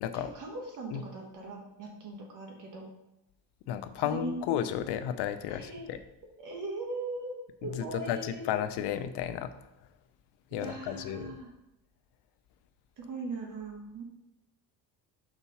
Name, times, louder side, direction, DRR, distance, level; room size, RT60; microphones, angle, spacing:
voice 1, 0.1-2.9 4.0-4.4 5.5-6.0 6.4-8.5 10.5-11.5 13.0-14.0, right 3 dB, 50° right, 0 dB, 1.5 m, -40 dB
voice 2, 3.7-6.0 7.8-9.5 10.5-11.3, left 10 dB, 80° left, 10 dB, 0.8 m, -33 dB
6.0 x 4.1 x 5.6 m, 0.89 s
cardioid pair, 120°, 40 cm